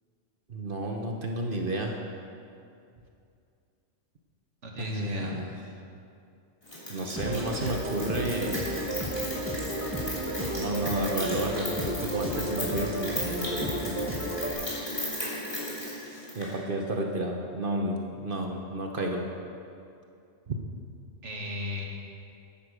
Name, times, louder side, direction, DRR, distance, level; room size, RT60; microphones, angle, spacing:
voice 1, 0.5-2.0 4.8-5.5 6.9-8.6 10.6-14.3 16.3-19.2 20.5-20.6, right 1 dB, 50° right, 1 dB, 1.1 m, -31 dB
voice 2, 4.6-5.4 21.2-21.8, left 2 dB, 85° right, -1 dB, 2.0 m, -35 dB
Rain, 6.7-16.5, left 1 dB, 25° left, 3.2 m, -35 dB
sound 1, 7.2-14.5, right 1 dB, 10° right, 1.3 m, -33 dB
10.0 x 9.7 x 6.5 m, 2.5 s
omnidirectional pair, 1.2 m